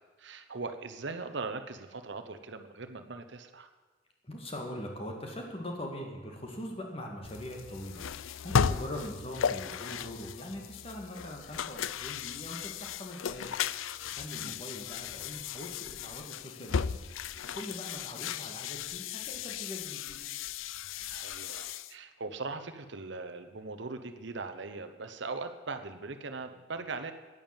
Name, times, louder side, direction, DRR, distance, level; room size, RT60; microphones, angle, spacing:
voice 1, 0.2-3.7 14.3-14.6 21.0-27.1, right 3 dB, 60° right, 8 dB, 0.9 m, -40 dB
voice 2, 4.2-13.6 14.0-17.0 17.5-20.2, left 1 dB, 30° left, 1 dB, 2.2 m, -42 dB
sound 1, 7.2-21.9, left 7 dB, 80° left, 0.4 m, -35 dB
11.0 x 9.5 x 9.0 m, 1.3 s
head